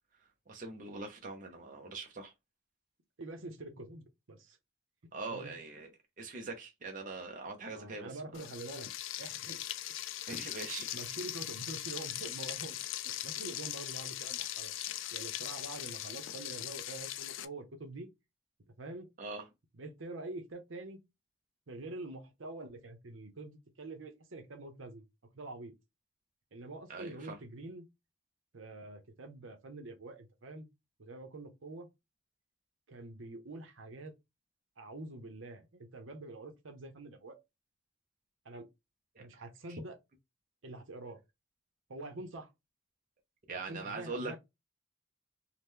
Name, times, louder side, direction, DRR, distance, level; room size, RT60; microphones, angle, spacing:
voice 1, 0.5-2.3 5.1-5.9 6.2-8.2 10.3-10.9 19.2-19.4 26.9-27.4 39.2-39.3 39.7-39.8 43.5-44.4, right 3 dB, 40° right, 0.5 m, -42 dB
voice 2, 3.2-4.6 5.3-5.5 7.7-8.9 9.2-9.6 10.9-12.8 13.2-14.7 15.1-18.1 18.8-19.1 19.7-21.0 21.7-25.0 25.3-25.7 26.5-27.9 28.5-30.7 31.0-31.9 32.9-34.1 34.8-37.4 38.4-38.7 39.2-40.0 40.6-41.2 41.9-42.5 43.7-44.4, right 2 dB, 75° right, 0.7 m, -46 dB
Frying (food), 8.3-17.5, left 13 dB, 70° left, 0.3 m, -40 dB
2.9 x 2.1 x 3.4 m
head